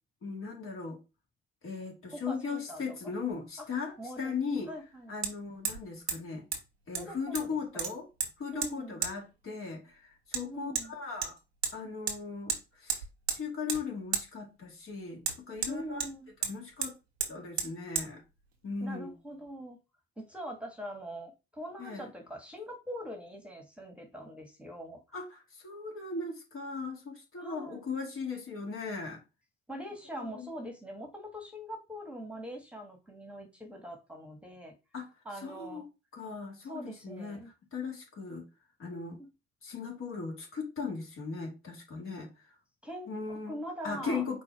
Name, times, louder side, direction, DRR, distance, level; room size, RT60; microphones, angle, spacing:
voice 1, 0.2-1.0 1.6-4.7 5.1-6.5 6.9-8.1 8.4-11.4 11.7-13.0 13.3-16.1 16.4-17.0 17.3-18.2 18.6-19.1 21.8-22.1 25.1-29.2 30.1-30.5 34.9-35.1 35.4-38.5 38.8-39.2 39.6-42.3 43.1-43.6 43.8-44.4, left 4 dB, 45° left, 2.1 m, -38 dB
voice 2, 2.1-3.1 3.6-3.7 4.0-4.3 4.7-5.1 6.9-7.6 8.5-9.0 10.4-10.9 15.7-16.3 18.8-19.8 20.2-25.2 27.4-27.8 29.7-34.7 35.2-35.8 36.6-37.5 39.2-39.3 42.8-44.2, equal, 5° right, 1.5 m, -43 dB
Hammer, 3.3-3.4 5.2-5.3 5.6-5.8 6.1-6.2 6.5-6.6 6.9-7.5 7.8-8.3 8.6-8.7 9.0-9.1 10.3-10.4 10.8-10.9 11.2-11.7 12.1-12.2 12.5-12.6 12.9-13.4 13.7-13.8 14.1-14.3 15.2-16.1 16.4-16.5 16.8-16.9 17.2-17.3 17.6-17.7 18.0-18.1, right 6 dB, 90° right, 0.9 m, -32 dB
4.5 x 2.6 x 4.6 m
hypercardioid pair, 55°, 31 cm